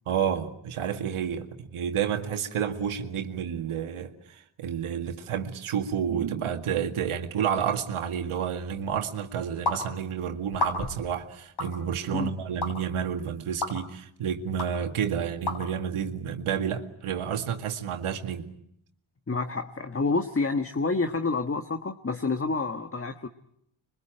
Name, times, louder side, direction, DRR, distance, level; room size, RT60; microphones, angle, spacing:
voice 1, 0.1-18.5, right 8 dB, 85° right, 2.1 m, -30 dB
sound 1, 9.7-9.8 10.5-11.0 11.6-11.7 12.6-12.7 13.6-13.7 14.6-14.7 15.5-15.6, left 2 dB, 50° left, 6.7 m, -29 dB
voice 2, 19.3-23.3, left 3 dB, 25° left, 1.6 m, -28 dB
26.5 x 23.5 x 9.0 m
cardioid pair, 65°, 49 cm